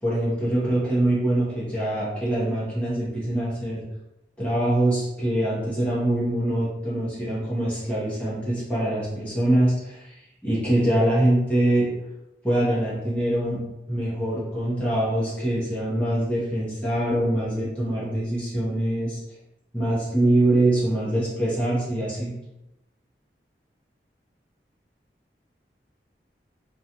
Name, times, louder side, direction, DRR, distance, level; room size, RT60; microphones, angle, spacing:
voice 1, 0.0-3.8 4.4-11.9 12.4-13.6 13.9-19.2 19.7-22.3, right 1 dB, 10° left, -9 dB, 0.8 m, -24 dB
2.5 x 2.3 x 2.8 m, 0.92 s
head